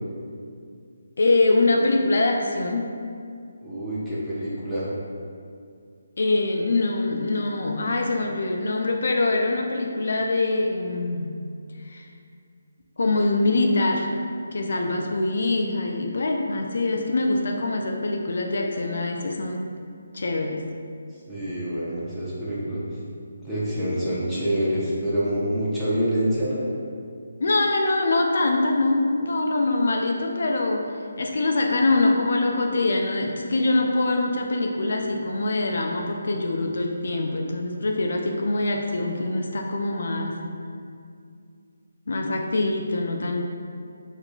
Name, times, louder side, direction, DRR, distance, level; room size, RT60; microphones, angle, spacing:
voice 1, 1.2-2.9 6.2-11.4 11.8-12.1 13.0-14.1 14.5-19.8 20.1-20.7 27.4-40.4 42.1-43.4, left 2 dB, 65° left, 2 dB, 0.3 m, -24 dB
voice 2, 3.6-4.9 21.3-22.8 23.4-26.6, equal, ahead, -12 dB, 0.7 m, -26 dB
4.8 x 2.4 x 2.2 m, 2.3 s
figure-of-eight pair, 160°, 0 cm